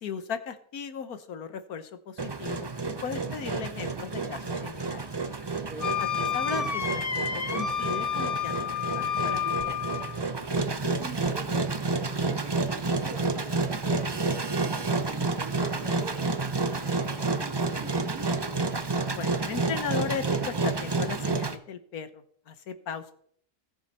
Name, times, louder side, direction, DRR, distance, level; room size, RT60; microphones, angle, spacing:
voice 1, 0.0-5.0 6.0-6.1 6.3-8.7 8.9-9.7 19.1-23.1, left 6 dB, 70° left, 10 dB, 1.5 m, -37 dB
Engine, 2.2-21.5, right 3 dB, 25° right, 0.5 m, -30 dB
voice 2, 5.5-6.0 10.6-18.5, right 3 dB, 70° right, -2 dB, 2.4 m, -44 dB
Wind instrument woodwind instrument, 5.8-10.2, left 8 dB, 30° left, 0.7 m, -30 dB
20.0 x 7.9 x 4.3 m, 0.63 s
omnidirectional pair, 1.7 m